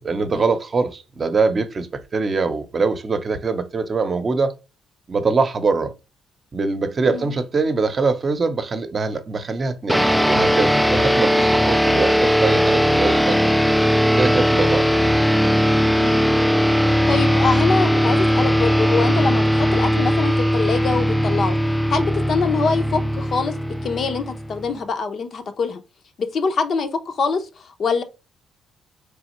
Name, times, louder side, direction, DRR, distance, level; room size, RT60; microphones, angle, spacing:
voice 1, 0.0-4.5 5.1-5.9 6.5-13.8 14.1-14.9, right 4 dB, 40° right, 0.8 m, -23 dB
sound 1, 9.9-24.7, equal, ahead, 0.3 m, -18 dB
voice 2, 17.1-21.6 21.9-23.5 23.8-25.8 26.2-28.0, left 4 dB, 55° left, 0.8 m, -24 dB
4.2 x 3.4 x 3.0 m
cardioid pair, 90°, 0 cm